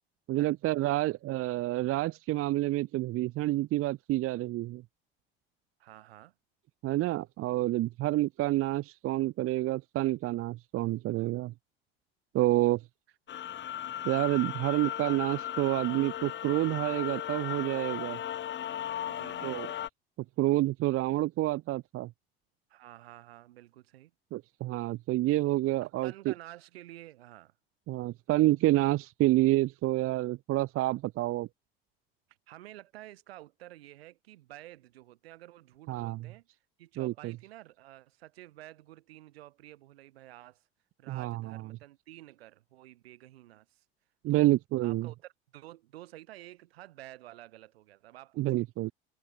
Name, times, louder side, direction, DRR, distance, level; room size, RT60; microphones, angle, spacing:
voice 1, 0.3-4.8 6.8-11.5 12.3-12.8 14.0-18.2 19.4-19.7 20.4-22.1 24.3-26.3 27.9-31.5 35.9-36.3 37.0-37.3 41.1-41.6 44.2-45.1 48.4-48.9, right 17 dB, 45° right, 0.7 m, -28 dB
voice 2, 5.8-6.3 19.0-19.6 22.7-24.1 25.8-27.5 32.5-36.5 36.8-40.7 41.0-43.8 44.3-44.5 44.8-48.7, right 15 dB, 75° right, 6.2 m, -51 dB
sound 1, 13.3-19.9, left 11 dB, 40° left, 1.1 m, -36 dB
hypercardioid pair, 70°, 30 cm